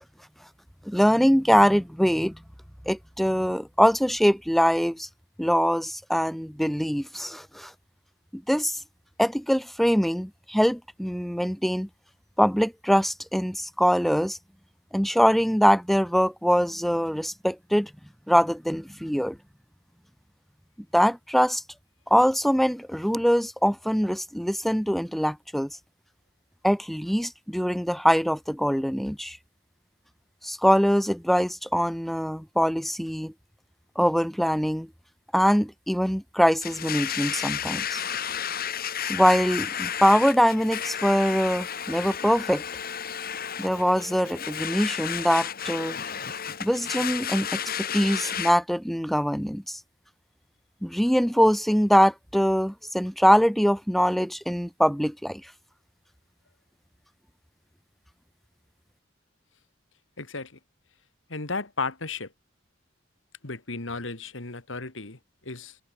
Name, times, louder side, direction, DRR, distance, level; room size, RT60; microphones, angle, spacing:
voice 1, 0.8-2.3 2.8-5.1 5.4-7.7 8.3-8.8 9.2-11.9 12.4-14.4 14.9-17.9 18.3-19.4 20.9-21.6 22.1-25.7 26.6-29.4 30.4-33.3 33.9-34.9 35.3-38.0 39.1-42.6 43.6-46.0 46.6-47.6 47.9-49.8 50.8-55.4, equal, ahead, 1.6 m, -23 dB
Domestic sounds home sounds, 36.6-48.5, left 8 dB, 50° left, 2.5 m, -32 dB
voice 2, 60.2-60.6 61.3-62.3 63.4-65.8, left 3 dB, 75° left, 2.5 m, -34 dB
head